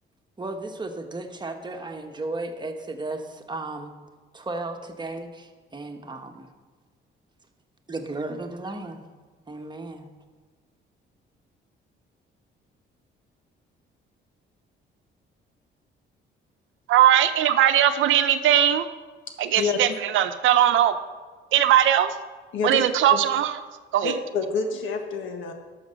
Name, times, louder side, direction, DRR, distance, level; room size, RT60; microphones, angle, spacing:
voice 1, 0.4-3.9 4.3-6.5 7.9-9.0 9.5-10.1, right 2 dB, 20° right, 5 dB, 1.2 m, -34 dB
voice 2, 16.9-18.9 19.4-21.0 21.5-22.1 22.6-23.6 23.9-24.1, right 11 dB, 80° right, 10 dB, 0.7 m, -19 dB
voice 3, 19.5-20.0 22.5-22.8 23.1-23.2 24.0-25.5, left 4 dB, 75° left, 5 dB, 1.5 m, -27 dB
12.0 x 6.6 x 5.3 m, 1.4 s
cardioid pair, 90°, 20 cm